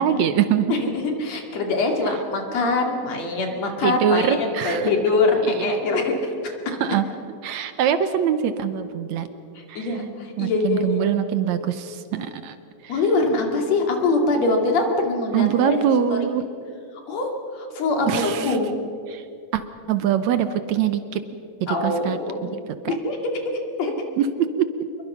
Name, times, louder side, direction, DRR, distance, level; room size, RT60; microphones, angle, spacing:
voice 1, 0.0-0.7 3.8-4.9 5.6-5.8 6.8-7.0 7.4-9.3 9.7-9.9 10.4-12.6 12.8-12.9 15.3-16.4 18.1-18.6 19.1-19.2 19.5-19.6 19.9-21.2 21.6-22.2 22.9-23.0 24.2-24.7, right 8 dB, 70° right, 11 dB, 1.8 m, -23 dB
voice 2, 0.7-6.7 9.5-11.1 12.9-15.8 16.1-16.2 17.1-18.7 21.7-22.6 22.9-23.2 23.8-23.9, left 3 dB, 55° left, 3 dB, 3.4 m, -23 dB
27.0 x 22.5 x 5.6 m, 2.5 s
omnidirectional pair, 3.9 m